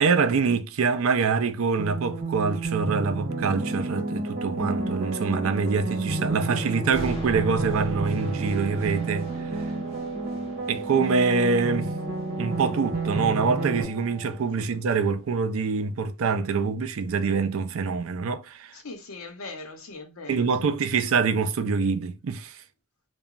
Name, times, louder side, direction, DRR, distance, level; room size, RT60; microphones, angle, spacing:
voice 1, 0.0-9.3 10.7-11.9 12.4-18.7 20.3-22.6, right 5 dB, 75° right, 0.4 m, -25 dB
sound 1, 1.8-13.8, right 3 dB, 45° right, 1.1 m, -30 dB
Wind instrument woodwind instrument, 6.6-14.6, right 4 dB, 10° right, 0.7 m, -45 dB
sound 2, 6.9-14.9, right 1 dB, 30° left, 1.3 m, -42 dB
voice 2, 18.7-20.8, left 3 dB, 90° left, 0.8 m, -40 dB
2.9 x 2.2 x 2.3 m
head